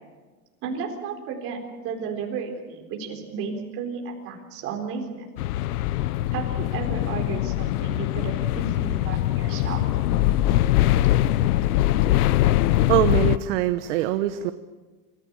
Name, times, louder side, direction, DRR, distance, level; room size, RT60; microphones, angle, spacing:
voice 1, 0.6-5.3 6.3-9.8, right 5 dB, 30° right, 1 dB, 4.1 m, -33 dB
sound 1, 5.4-13.4, left 14 dB, 90° left, 0.8 m, -22 dB
voice 2, 12.6-14.5, right 13 dB, 55° right, 10 dB, 1.0 m, -23 dB
26.5 x 15.0 x 8.8 m, 1.3 s
supercardioid pair, 170°, 44 cm